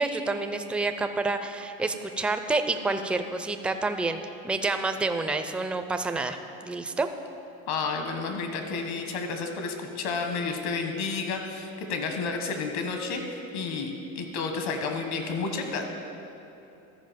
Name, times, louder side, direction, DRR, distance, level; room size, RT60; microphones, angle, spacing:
voice 1, 0.0-4.2 4.4-6.4 6.6-7.1, right 3 dB, 5° right, 8 dB, 0.4 m, -28 dB
voice 2, 7.7-15.8, left 4 dB, 65° left, 4 dB, 1.5 m, -31 dB
13.5 x 5.0 x 5.2 m, 3.0 s
supercardioid pair, 85°, 41 cm